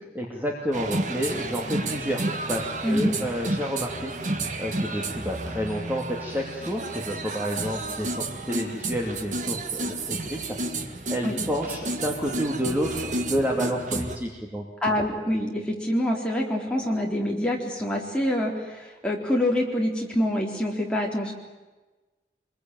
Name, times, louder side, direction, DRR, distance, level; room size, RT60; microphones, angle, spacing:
voice 1, 0.1-10.6 10.8-14.7, equal, 10° right, -1 dB, 2.6 m, -30 dB
sound 1, 0.7-14.2, right 2 dB, 40° right, 1.8 m, -31 dB
voice 2, 14.8-21.3, left 1 dB, 5° left, -2 dB, 4.0 m, -26 dB
25.5 x 22.0 x 9.2 m, 1.2 s
head